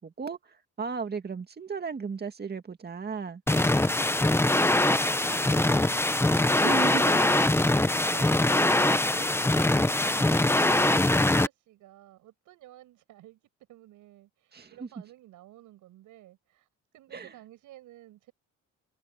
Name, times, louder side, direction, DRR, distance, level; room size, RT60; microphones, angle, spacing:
voice 1, 0.0-3.4 6.6-7.2 10.0-10.2 14.5-14.7 17.1-17.3, right 5 dB, 35° right, 2.1 m, -35 dB
sound 1, 3.5-11.5, left 1 dB, 10° left, 1.0 m, -23 dB
voice 2, 7.7-13.4 13.7-16.7 16.9-18.3, right 15 dB, 90° right, 7.7 m, -53 dB
cardioid pair, 90°, 30 cm